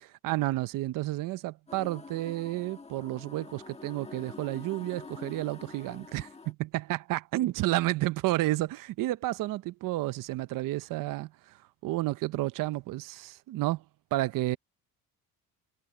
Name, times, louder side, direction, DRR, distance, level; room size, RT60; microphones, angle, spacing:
voice 1, 0.0-13.8 14.1-14.6, right 17 dB, 60° right, 0.7 m, -31 dB
sound 1, 1.7-6.5, left 4 dB, 15° left, 1.4 m, -47 dB
cardioid pair, 140°, 37 cm